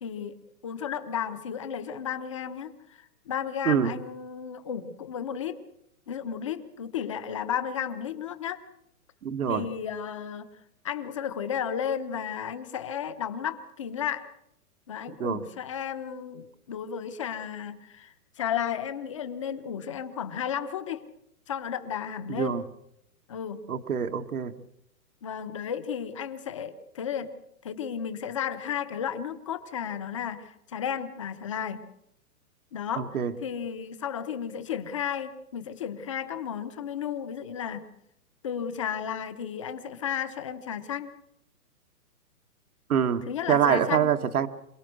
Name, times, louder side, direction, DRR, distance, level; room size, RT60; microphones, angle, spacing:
voice 1, 0.0-0.3 0.6-5.6 6.1-8.6 9.5-10.5 10.8-14.3 14.9-21.0 21.5-22.6 23.3-23.6 25.2-27.3 27.6-31.8 32.7-37.8 38.4-41.1 43.3-44.1, left 8 dB, 20° left, 11 dB, 0.9 m, -33 dB
voice 2, 3.6-4.0 9.2-9.7 15.2-15.4 22.3-22.6 23.7-24.5 33.0-33.3 42.9-44.5, right 8 dB, 70° right, 9 dB, 1.6 m, -25 dB
27.0 x 18.0 x 6.3 m, 0.78 s
hypercardioid pair, 175°, 44 cm